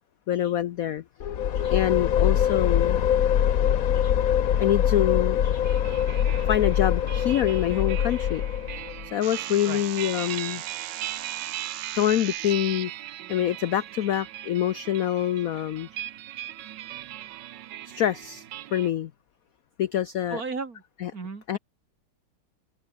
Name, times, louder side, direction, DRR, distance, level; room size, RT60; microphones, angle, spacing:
voice 1, 0.3-1.0 1.6-3.0 3.9-4.1 4.6-5.6 6.5-8.4 9.0-10.6 11.5-12.9 13.3-16.1 17.9-18.4 18.7-19.1 19.8-20.4 21.0-21.1 21.5-21.6, left 11 dB, 75° left, 0.8 m, -26 dB
sound 1, 1.2-9.1, left 9 dB, 55° left, 1.1 m, -23 dB
sound 2, 5.6-18.9, right 13 dB, 65° right, 1.3 m, -39 dB
sound 3, 9.2-12.8, right 13 dB, 85° right, 1.8 m, -38 dB
voice 2, 20.3-20.8 21.1-21.6, right 4 dB, 45° right, 3.0 m, -34 dB
open air
omnidirectional pair, 2.3 m